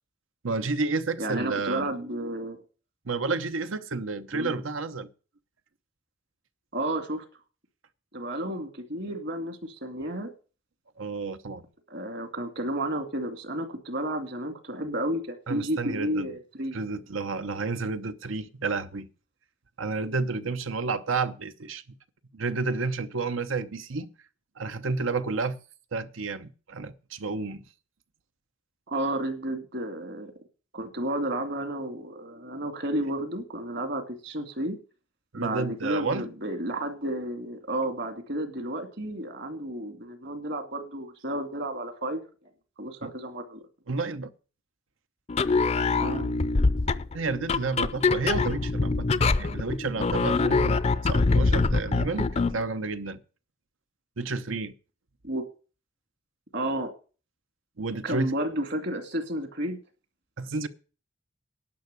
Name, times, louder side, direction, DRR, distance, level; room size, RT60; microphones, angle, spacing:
voice 1, 0.4-1.9 3.0-5.1 11.0-11.6 15.5-16.3 16.7-19.1 19.8-21.8 22.3-24.1 24.6-25.6 25.9-27.6 35.3-36.3 43.0-43.1 43.9-44.3 47.1-53.2 54.2-54.7 57.8-58.3 60.4-60.7, right 4 dB, 85° right, 0.9 m, -31 dB
voice 2, 1.2-2.6 4.3-4.5 6.7-7.2 8.1-10.3 11.9-16.8 28.9-30.3 30.7-34.8 35.4-42.2 42.8-43.6 46.0-46.3 55.2-55.4 56.5-56.9 58.0-59.8, right 1 dB, 60° right, 2.3 m, -32 dB
sound 1, 45.3-52.6, left 3 dB, 35° left, 0.5 m, -24 dB
11.5 x 6.0 x 8.2 m
head